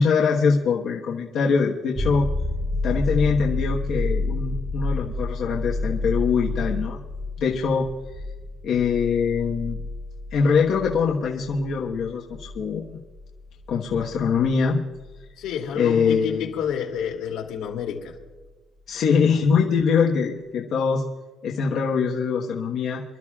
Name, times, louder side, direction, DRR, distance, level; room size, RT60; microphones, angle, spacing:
voice 1, 0.0-2.3 2.8-7.0 7.4-7.9 8.6-9.8 10.3-13.0 13.7-14.8 15.7-16.5 18.9-21.0 21.4-23.0, left 5 dB, 55° left, -2 dB, 1.3 m, -23 dB
sound 1, 2.0-15.5 18.2-18.3, left 2 dB, 20° right, 0.8 m, -30 dB
voice 2, 15.4-18.1, left 8 dB, 85° left, 0 dB, 2.7 m, -29 dB
27.5 x 13.0 x 2.4 m, 1.3 s
cardioid pair, 150°, 0 cm